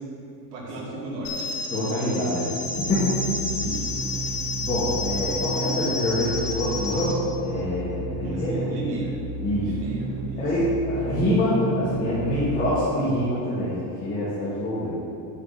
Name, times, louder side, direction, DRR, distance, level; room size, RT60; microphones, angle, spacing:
voice 1, 0.5-1.5 3.5-3.9 8.2-9.1 9.6-10.5, right 1 dB, 85° right, -4 dB, 2.1 m, -34 dB
sound 1, 1.2-7.2, left 3 dB, 65° left, 1.8 m, -31 dB
voice 2, 1.7-2.5 2.8-3.2 4.6-8.6 9.4-9.7 10.4-14.9, left 1 dB, 15° left, -9 dB, 1.4 m, -25 dB
sound 2, 2.6-13.4, right 3 dB, 35° right, 0.4 m, -33 dB
8.4 x 7.0 x 4.1 m, 2.7 s
cardioid pair, 165°, 47 cm